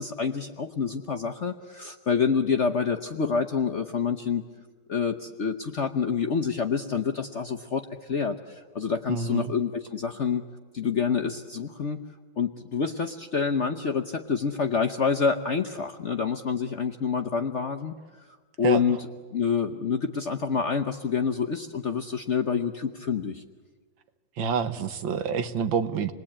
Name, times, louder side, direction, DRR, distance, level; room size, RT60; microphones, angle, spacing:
voice 1, 0.0-4.4 4.9-10.4 10.7-12.0 12.4-17.9 18.6-19.0 19.3-23.4, left 6 dB, 50° left, 4 dB, 1.0 m, -27 dB
voice 2, 9.1-9.5 18.6-18.8 24.4-26.1, right 6 dB, 85° right, 10 dB, 2.0 m, -27 dB
28.5 x 20.5 x 8.7 m, 1.4 s
omnidirectional pair, 2.0 m